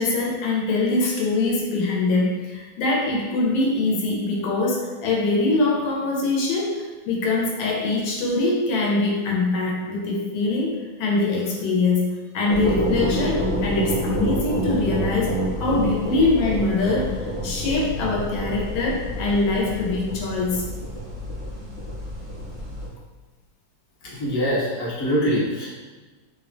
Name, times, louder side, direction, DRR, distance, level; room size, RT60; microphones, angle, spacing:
voice 1, 0.0-17.2 17.4-20.7, left 3 dB, 85° left, -2 dB, 1.4 m, -23 dB
sound 1, 12.5-22.9, equal, 60° right, 0.7 m, -28 dB
voice 2, 24.0-25.7, equal, 55° left, -7 dB, 1.0 m, -24 dB
3.3 x 2.1 x 2.5 m, 1.3 s
omnidirectional pair, 2.1 m